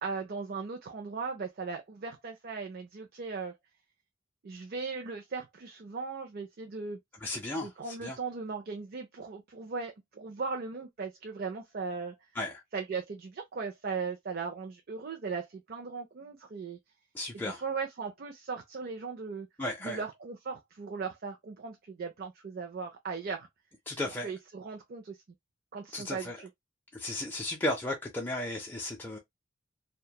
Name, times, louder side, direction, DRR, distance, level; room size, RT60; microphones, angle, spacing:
voice 1, 0.0-3.5 4.4-7.0 7.6-12.2 12.7-16.8 17.4-19.5 19.8-23.5 24.2-25.2 25.7-26.5, right 4 dB, 50° right, 0.4 m, -38 dB
voice 2, 7.2-7.7 8.0-8.2 12.4-12.6 17.1-17.6 19.6-20.0 23.9-24.3 25.9-26.4 26.9-29.2, left 1 dB, 10° left, 0.5 m, -34 dB
2.9 x 2.2 x 2.2 m
head